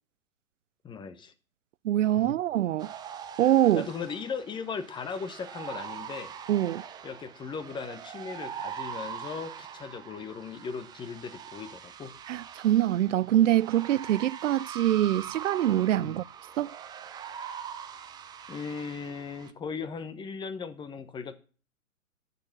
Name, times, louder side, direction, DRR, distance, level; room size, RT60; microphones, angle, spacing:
voice 1, 0.8-1.3 3.8-6.3 7.0-12.1 16.0-16.2 18.5-21.4, left 5 dB, 10° left, 1.1 m, -38 dB
voice 2, 1.8-2.9 3.4-3.9 6.5-6.8 12.3-16.2 16.6-16.7, right 12 dB, 60° right, 0.5 m, -24 dB
sound 1, 2.8-19.5, right 8 dB, 10° right, 0.7 m, -42 dB
14.5 x 6.9 x 7.2 m
hypercardioid pair, 125°, 42 cm